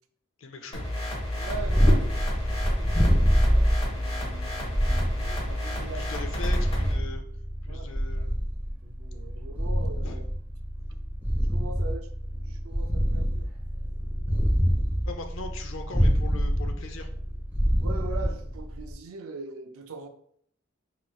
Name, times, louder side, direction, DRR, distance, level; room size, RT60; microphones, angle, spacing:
voice 1, 0.4-0.8 5.8-7.2 7.6-8.4 10.0-10.2 15.0-17.1, left 3 dB, 65° left, 0.5 m, -40 dB
sound 1, 0.7-6.9, left 1 dB, 25° left, 0.8 m, -32 dB
Purr, 1.3-18.9, equal, 10° right, 1.4 m, -26 dB
voice 2, 1.4-3.0 3.3-6.0 7.7-7.9 8.8-10.2 11.5-12.1 12.4-13.5 17.8-20.1, right 3 dB, 85° right, 0.4 m, -42 dB
4.2 x 3.0 x 2.3 m
head